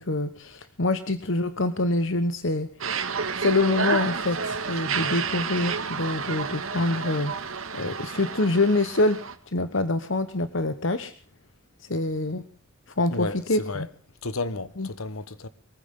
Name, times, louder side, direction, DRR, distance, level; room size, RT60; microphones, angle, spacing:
voice 1, 0.0-2.7 3.4-7.3 7.7-9.2 9.5-11.1 11.9-12.4 13.0-13.9 14.8-14.9, left 2 dB, 60° left, 1.1 m, -25 dB
sound 1, 2.8-9.4, right 5 dB, 75° right, 1.9 m, -30 dB
voice 2, 13.1-13.9 14.2-15.5, left 3 dB, 90° left, 1.3 m, -32 dB
23.0 x 15.0 x 3.7 m
head